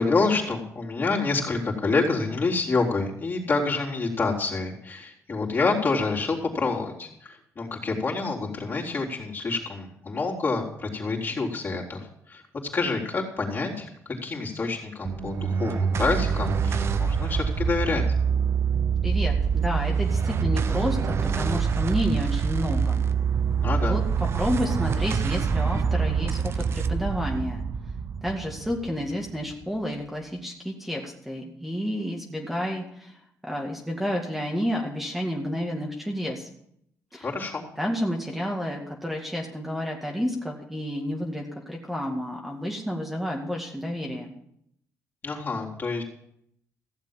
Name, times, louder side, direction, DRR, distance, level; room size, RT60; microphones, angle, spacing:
voice 1, 0.0-12.4 12.7-18.0 23.6-24.0 37.2-37.7 45.2-46.0, left 3 dB, 35° left, -3 dB, 3.8 m, -27 dB
sound 1, 15.0-29.6, right 6 dB, 50° right, 0.8 m, -25 dB
voice 2, 19.0-23.0 23.9-24.0 24.4-27.6 28.2-36.5 37.1-37.3 37.8-44.3, equal, ahead, 0 dB, 2.1 m, -30 dB
15.5 x 7.5 x 7.4 m, 0.72 s
cardioid pair, 100°, 6 cm